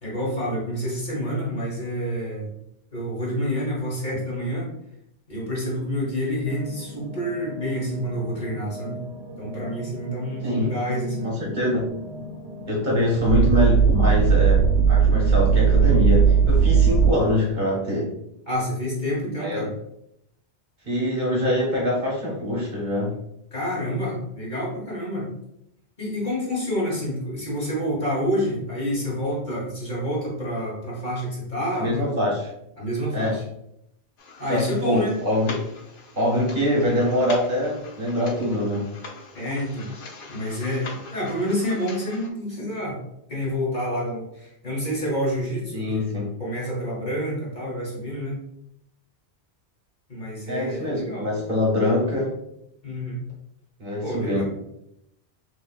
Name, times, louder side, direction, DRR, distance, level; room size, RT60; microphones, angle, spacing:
voice 1, 0.0-2.5 2.9-4.7 5.3-9.0 9.4-11.3 18.5-19.7 23.5-25.3 26.0-32.1 32.8-33.4 34.4-35.2 39.3-39.9 40.3-43.0 43.3-48.4 50.1-51.3 52.8-53.2 54.0-54.4, equal, 45° left, -4 dB, 1.4 m, -28 dB
sound 1, 6.5-17.1, right 6 dB, 70° right, 0.9 m, -22 dB
voice 2, 11.2-11.9 12.7-18.1 19.4-19.7 20.8-23.1 31.7-32.5 33.1-33.4 34.5-35.6 36.1-38.9 45.7-46.3 50.5-52.3 53.8-54.4, left 1 dB, 45° right, -4 dB, 1.0 m, -24 dB
sound 2, 34.2-42.3, left 3 dB, 60° left, 0.7 m, -42 dB
4.0 x 3.2 x 2.4 m, 0.79 s
omnidirectional pair, 1.1 m